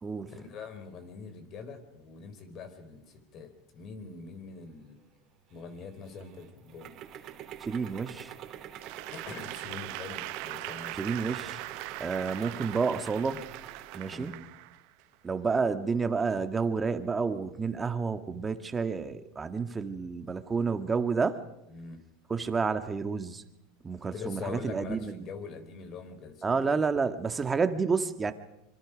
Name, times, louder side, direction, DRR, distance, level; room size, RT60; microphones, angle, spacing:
voice 1, 0.3-5.0 5.5-6.9 9.1-11.0 14.1-14.4 21.7-22.0 24.1-26.8, left 5 dB, 45° left, 9 dB, 4.2 m, -43 dB
sound 1, 5.5-14.4, right 10 dB, 45° right, 3.0 m, -46 dB
voice 2, 7.6-8.3 11.0-11.6 12.0-13.4 13.9-14.4 15.2-21.4 22.3-23.4 23.8-25.1 26.4-28.3, right 5 dB, 20° right, 8 dB, 1.7 m, -30 dB
Applause / Crowd, 8.7-15.1, right 20 dB, 65° right, 1.0 m, -41 dB
25.5 x 24.5 x 5.2 m, 0.89 s
supercardioid pair, 120°, 0 cm